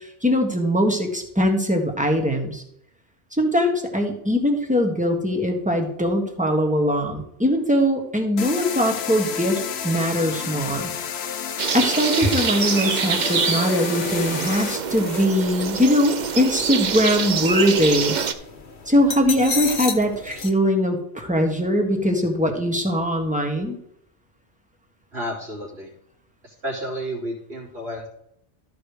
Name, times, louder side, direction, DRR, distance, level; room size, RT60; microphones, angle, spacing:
voice 1, 0.2-2.6 3.4-10.9 11.7-18.2 18.9-23.8, equal, 5° right, 2 dB, 1.5 m, -21 dB
sound 1, 8.4-14.8, left 8 dB, 70° left, 0.9 m, -31 dB
sound 2, 11.6-18.3, right 6 dB, 50° right, 0.7 m, -25 dB
sound 3, 14.1-20.5, left 4 dB, 50° left, 1.1 m, -35 dB
voice 2, 25.1-25.9 26.4-28.1, equal, 70° right, -5 dB, 3.2 m, -31 dB
13.5 x 4.9 x 4.9 m, 0.73 s
omnidirectional pair, 1.1 m